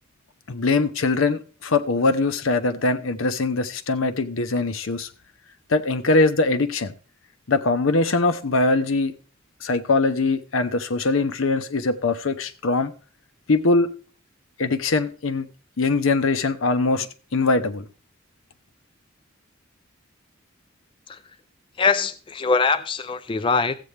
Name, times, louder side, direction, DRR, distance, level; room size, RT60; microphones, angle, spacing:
voice 1, 0.5-5.1 5.7-6.9 7.5-9.1 9.6-12.9 13.5-13.9 14.6-15.5 15.8-17.1 17.3-17.9, left 3 dB, 80° left, 0.8 m, -22 dB
voice 2, 21.8-23.8, left 4 dB, 25° left, 0.4 m, -22 dB
14.0 x 8.3 x 3.3 m
head